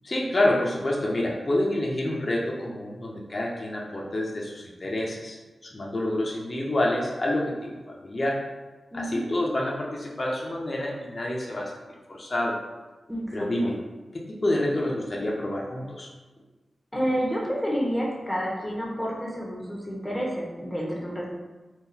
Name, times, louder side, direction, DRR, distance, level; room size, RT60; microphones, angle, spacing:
voice 1, 0.0-5.4 5.6-8.4 8.9-11.8 12.1-12.6 13.3-13.8 14.1-16.1, left 1 dB, 45° left, -2 dB, 0.6 m, -28 dB
voice 2, 8.9-9.2 13.1-13.7 16.9-21.3, equal, 10° left, -4 dB, 1.1 m, -29 dB
3.7 x 2.4 x 2.8 m, 1.2 s
cardioid pair, 40°, 0 cm